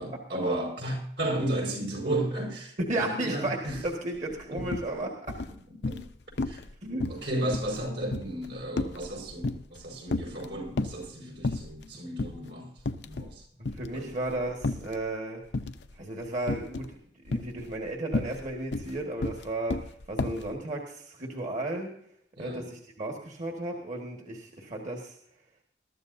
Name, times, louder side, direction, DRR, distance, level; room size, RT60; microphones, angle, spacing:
voice 1, 0.0-3.8 4.5-4.6 5.5-5.6 5.9-6.1 6.4-6.6 7.1-12.7 13.0-13.4 13.9-14.1 22.4-22.7, right 1 dB, 75° right, 5.1 m, -33 dB
voice 2, 2.9-5.1 6.8-7.1 13.7-15.4 16.0-16.9 17.2-21.9 22.4-25.2, right 2 dB, 45° right, 1.7 m, -34 dB
sound 1, 3.7-3.9 4.2-4.9 5.3-6.1 6.4-6.7 7.0-9.8 10.1-11.1 11.4-11.9 12.2-12.4 12.8-13.4 13.6-15.0 15.5-15.9 16.5-16.9 17.3-20.5, left 2 dB, 70° left, 0.7 m, -32 dB
21.5 x 13.0 x 2.7 m
head